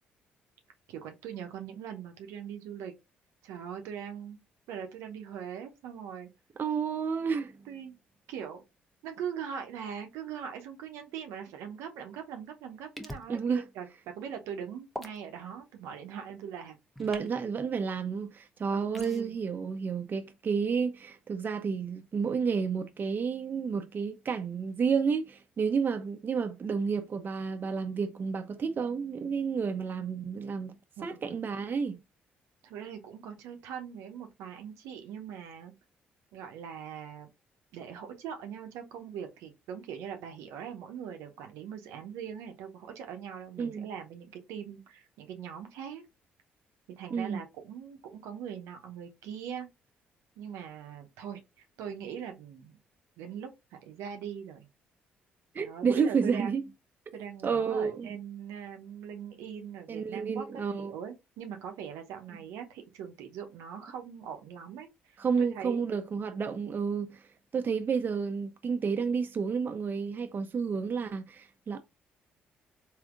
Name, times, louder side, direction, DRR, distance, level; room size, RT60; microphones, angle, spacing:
voice 1, 0.9-2.9 3.4-4.4 4.7-6.3 7.7-7.9 8.3-8.6 9.0-16.8 18.7-19.3 31.0-31.4 32.6-35.7 36.3-37.3 37.7-46.0 47.0-49.7 50.4-52.8 53.2-53.5 53.8-54.7 55.6-56.7 57.1-60.4 60.7-65.8, right 8 dB, 75° right, 0.7 m, -41 dB
voice 2, 6.6-7.6 13.3-13.6 17.0-30.8 31.0-32.0 43.6-43.9 47.1-47.4 55.5-56.7 57.4-58.1 59.9-60.9 65.2-67.2 67.5-71.8, right 5 dB, 40° right, 0.5 m, -31 dB
sound 1, 13.0-13.3 14.9-15.2 16.9-17.3 18.9-19.2, equal, 5° left, 0.8 m, -41 dB
3.4 x 2.7 x 2.4 m
hypercardioid pair, 50°, 5 cm